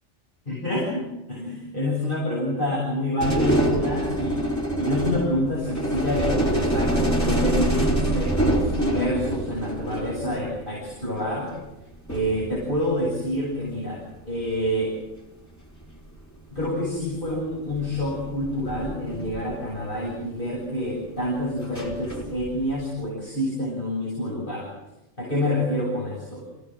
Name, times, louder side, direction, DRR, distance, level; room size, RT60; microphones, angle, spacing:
voice 1, 0.5-1.0 1.3-4.4 4.8-11.5 12.1-15.0 16.5-24.7 25.2-26.5, left 1 dB, 50° left, -5 dB, 7.9 m, -27 dB
sound 1, 3.2-10.6 11.8-11.9 12.1-13.4 14.5-14.8 15.9-16.0 16.6-16.9 17.7-20.1 21.6-22.8, right 1 dB, 15° left, 4.3 m, -26 dB
28.5 x 17.5 x 7.7 m, 0.92 s
omnidirectional pair, 1.2 m